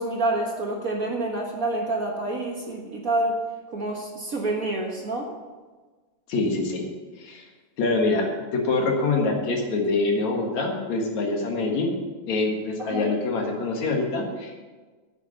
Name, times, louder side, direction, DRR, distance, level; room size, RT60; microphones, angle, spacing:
voice 1, 0.0-3.4 3.7-5.3 12.8-13.1, right 2 dB, 50° right, 0 dB, 1.0 m, -27 dB
voice 2, 6.3-6.9 7.2-7.5 7.8-11.9 12.3-14.6, left 3 dB, 65° left, 1 dB, 3.0 m, -25 dB
9.7 x 8.9 x 7.1 m, 1.3 s
omnidirectional pair, 3.5 m